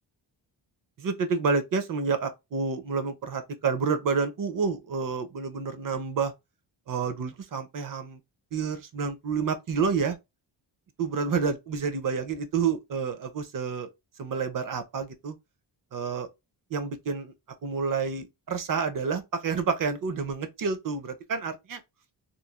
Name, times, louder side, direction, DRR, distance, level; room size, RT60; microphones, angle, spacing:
voice 1, 1.0-6.3 6.9-8.2 8.5-10.2 11.0-13.9 14.2-15.4 15.9-16.3 16.7-17.3 17.6-21.8, right 5 dB, 45° right, 0.5 m, -29 dB
3.0 x 2.3 x 2.2 m
wide cardioid pair, 145°, 45 cm